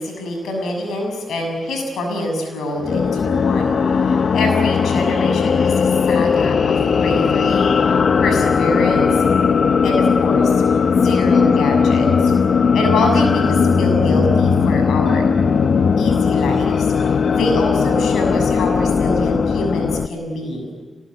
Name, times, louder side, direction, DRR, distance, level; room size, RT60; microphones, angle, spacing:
voice 1, 0.0-9.2 9.8-10.5 10.9-12.3 12.7-15.3 16.0-20.6, left 1 dB, 85° left, 4 dB, 6.7 m, -25 dB
sound 1, 2.8-20.1, left 6 dB, 65° left, 1.1 m, -17 dB
23.5 x 21.0 x 9.7 m, 1.3 s
supercardioid pair, 50°, 0 cm